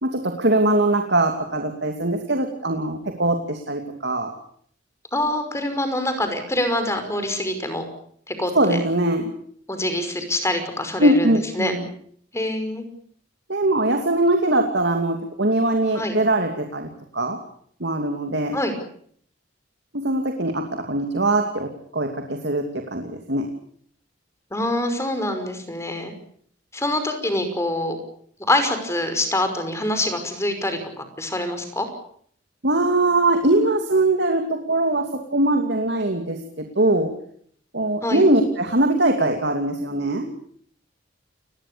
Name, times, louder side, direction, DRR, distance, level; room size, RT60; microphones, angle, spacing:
voice 1, 0.0-4.3 8.5-9.3 11.0-11.8 13.5-17.4 17.8-18.6 19.9-23.5 32.6-37.1 37.7-40.3, right 2 dB, 60° right, 4 dB, 2.8 m, -21 dB
voice 2, 5.1-7.8 8.3-8.8 9.7-11.7 12.3-12.8 15.9-16.2 18.5-18.7 24.5-26.1 26.7-28.0 28.4-31.9 38.0-38.2, left 1 dB, 15° left, 7 dB, 5.6 m, -25 dB
29.5 x 21.0 x 7.0 m, 0.62 s
head